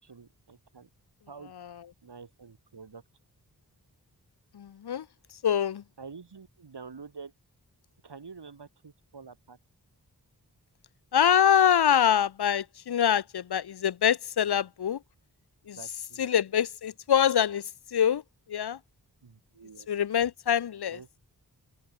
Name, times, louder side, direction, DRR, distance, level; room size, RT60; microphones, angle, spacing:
voice 1, 0.0-0.9 1.3-1.5 2.0-3.0 6.0-7.3 8.0-9.6 15.8-16.3 19.2-19.9 20.9-21.2, right 5 dB, 85° right, 5.2 m, -47 dB
voice 2, 4.5-5.1 5.4-5.8 11.1-15.0 15.7-15.8 16.2-18.2 18.5-18.8 19.9-21.0, left 9 dB, 75° left, 0.7 m, -25 dB
open air
cardioid pair, 45°, 40 cm